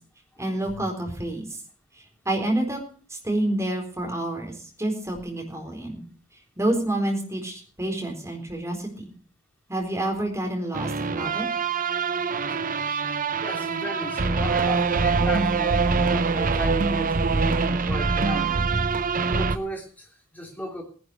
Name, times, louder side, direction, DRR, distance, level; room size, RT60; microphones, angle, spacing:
voice 1, 0.4-1.4 2.2-2.8 3.1-4.5 4.8-6.0 6.6-9.1 9.7-11.5, right 1 dB, 15° right, 2 dB, 4.1 m, -28 dB
sound 1, 10.7-19.6, right 4 dB, 40° right, 0.7 m, -24 dB
voice 2, 13.4-18.5 18.8-18.9 19.3-20.8, equal, 10° left, 0 dB, 3.4 m, -35 dB
18.0 x 11.0 x 4.8 m, 0.42 s
head